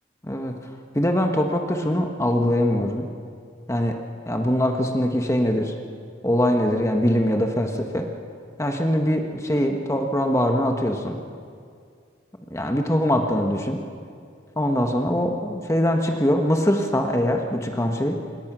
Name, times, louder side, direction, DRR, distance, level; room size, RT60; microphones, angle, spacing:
voice 1, 0.9-3.1 3.7-4.0 4.3-5.7 6.2-8.1 8.6-11.2 12.5-13.8 14.6-18.2, equal, 15° left, 3 dB, 1.4 m, -22 dB
27.0 x 21.5 x 6.2 m, 2.2 s
head